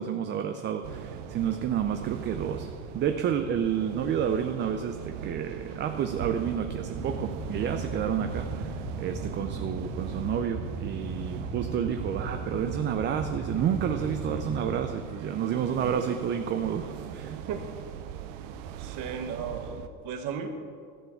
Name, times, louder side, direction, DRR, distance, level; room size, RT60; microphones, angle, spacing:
voice 1, 0.0-2.7 2.9-17.4, right 8 dB, 30° right, 6 dB, 0.6 m, -30 dB
sound 1, 0.8-19.9, right 9 dB, 75° right, 1.0 m, -39 dB
sound 2, 6.9-14.8, right 2 dB, ahead, 2.1 m, -37 dB
voice 2, 17.3-17.7 18.8-20.5, right 6 dB, 50° right, 6 dB, 1.5 m, -35 dB
13.0 x 6.9 x 7.1 m, 2.2 s
supercardioid pair, 130°, 38 cm